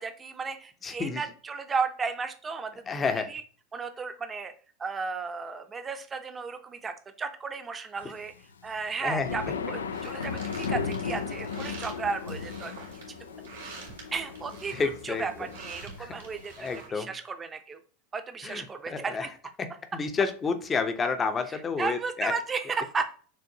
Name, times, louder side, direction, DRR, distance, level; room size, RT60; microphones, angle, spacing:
voice 1, 0.0-2.8 3.1-3.4 3.7-4.5 4.8-8.3 8.6-12.7 13.6-13.8 14.1-14.7 15.0-16.7 16.9-17.8 18.1-19.3 21.8-23.2, right 4 dB, 25° right, 8 dB, 0.7 m, -34 dB
voice 2, 0.8-1.2 2.9-3.3 9.0-9.3 14.7-15.5 16.0-16.1 16.6-17.1 18.4-19.3 19.6-19.7 19.9-22.3, left 5 dB, 25° left, 8 dB, 0.7 m, -30 dB
sound 1, 8.4-16.4, left 5 dB, 85° left, 0.3 m, -36 dB
sound 2, 9.9-16.9, right 4 dB, 80° right, 2.3 m, -47 dB
6.2 x 2.5 x 2.8 m, 0.41 s
hypercardioid pair, 85°, 0 cm